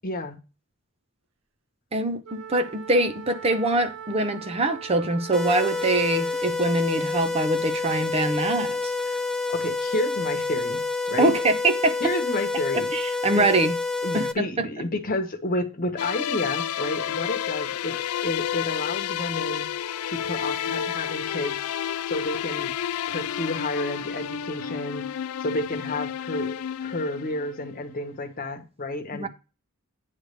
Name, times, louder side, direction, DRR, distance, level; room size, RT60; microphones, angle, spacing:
voice 1, 0.0-0.4 9.1-11.3 12.0-12.9 13.3-13.5 14.0-19.7 20.0-21.6 22.0-22.7 23.1-25.0 25.4-26.6 26.8-29.3, left 1 dB, 40° left, 1.3 m, -30 dB
voice 2, 1.9-8.9 11.2-12.0 12.7-13.7 14.1-14.7 29.1-29.3, right 2 dB, 30° right, 0.8 m, -24 dB
Wind instrument woodwind instrument, 2.2-6.6, right 8 dB, 80° right, 1.0 m, -41 dB
sound 1, 5.3-14.3, left 3 dB, 5° left, 0.5 m, -28 dB
sound 2, 16.0-27.8, left 9 dB, 75° left, 0.4 m, -30 dB
9.2 x 3.3 x 6.6 m
head